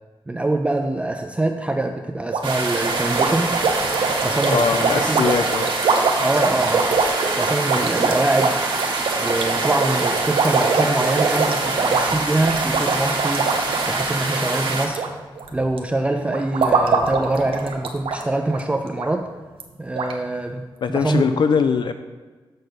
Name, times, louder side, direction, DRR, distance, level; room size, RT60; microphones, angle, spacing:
voice 1, 0.3-3.6 4.2-5.3 6.2-6.9 7.4-8.6 9.2-13.5 13.9-15.1 15.5-19.3 19.8-21.4, right 2 dB, 15° right, 4 dB, 0.4 m, -24 dB
sound 1, 2.3-15.1 15.4-15.8 16.3-18.2 18.5-18.6 19.0-19.1 19.6-19.7 20.0-20.1, right 4 dB, 85° right, 0.7 m, -23 dB
sound 2, 2.4-14.9, right 3 dB, 65° right, 1.3 m, -25 dB
voice 2, 4.4-5.7 20.8-21.9, left 6 dB, 60° left, 8 dB, 0.3 m, -21 dB
6.6 x 6.3 x 4.1 m, 1.3 s
wide cardioid pair, 150°, 9 cm